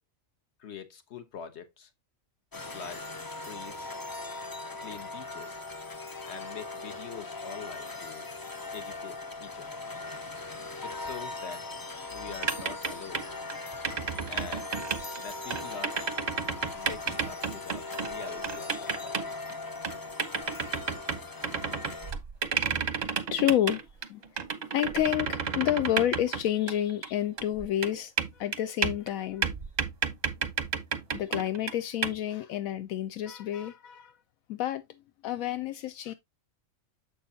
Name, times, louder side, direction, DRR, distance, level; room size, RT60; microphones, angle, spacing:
voice 1, 0.6-1.9 2.7-3.1 3.4-3.9 4.8-5.6 6.3-8.3 8.7-9.8 10.8-11.7 12.1-13.3 14.3-14.7 15.2-16.0 16.7-19.5, left 7 dB, 55° left, 1.3 m, -44 dB
sound 1, 2.5-22.1, left 3 dB, 35° left, 0.3 m, -39 dB
sound 2, 12.3-13.5 13.8-15.2 15.5-19.5 19.8-27.1 27.4-29.1 29.4-31.7 32.0-32.2, right 6 dB, 40° right, 0.7 m, -31 dB
voice 2, 23.3-23.8 24.1-24.4 24.7-29.5 31.1-34.2 34.5-34.8 35.2-36.1, left 12 dB, 80° left, 1.0 m, -29 dB
7.1 x 6.3 x 2.7 m
omnidirectional pair, 1.4 m